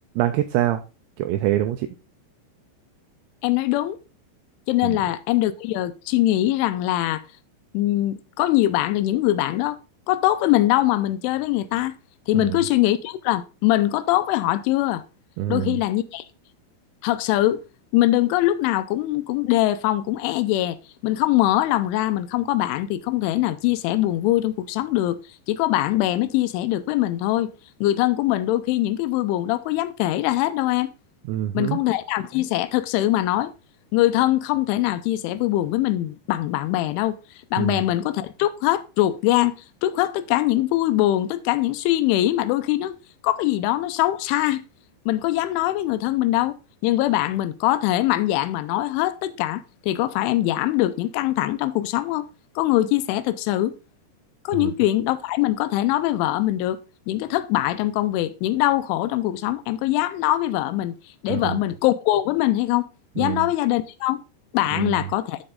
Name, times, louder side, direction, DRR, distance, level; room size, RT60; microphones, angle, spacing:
voice 1, 0.2-0.8 1.2-1.9 4.8-5.0 12.3-12.6 15.4-15.8 31.3-31.8 37.6-37.8 54.6-54.7 61.3-61.6 63.2-63.5 64.7-65.1, right 13 dB, 80° right, 2.6 m, -25 dB
voice 2, 3.4-4.0 4.7-7.2 7.7-9.8 10.1-11.9 12.3-15.0 15.5-16.3 17.0-17.6 17.9-20.8 21.0-25.2 25.5-27.5 27.8-30.9 31.5-33.5 33.9-37.2 37.5-39.5 39.8-43.0 43.2-44.6 45.1-46.6 46.8-52.3 52.6-53.7 54.5-56.8 57.1-61.0 61.2-62.9 63.2-64.2 64.5-65.4, left 15 dB, 90° left, 3.1 m, -22 dB
12.0 x 4.3 x 3.8 m
omnidirectional pair, 5.4 m